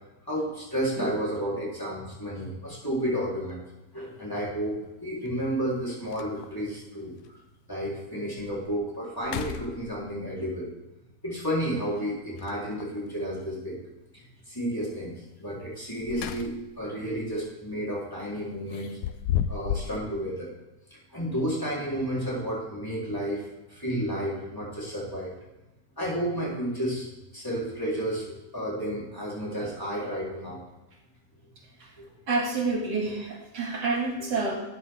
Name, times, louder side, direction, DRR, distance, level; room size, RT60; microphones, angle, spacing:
voice 1, 0.2-3.6 3.9-7.2 7.7-10.7 11.2-13.8 14.1-19.0 19.5-20.5 20.9-25.4 26.0-27.1 27.3-30.6 32.0-32.1, equal, 10° left, -7 dB, 3.6 m, -31 dB
sound 1, 3.4-3.5 5.3-5.4 5.8-5.9 6.1-6.7 7.2-7.3 7.9-8.0 8.4-8.7 9.2-10.3 12.4-13.0 15.8-16.8 17.2-17.4 18.7-20.0, left 10 dB, 70° left, 1.1 m, -33 dB
voice 2, 32.3-34.5, right 3 dB, 85° right, -1 dB, 2.7 m, -28 dB
12.5 x 8.1 x 3.6 m, 1.0 s
omnidirectional pair, 1.8 m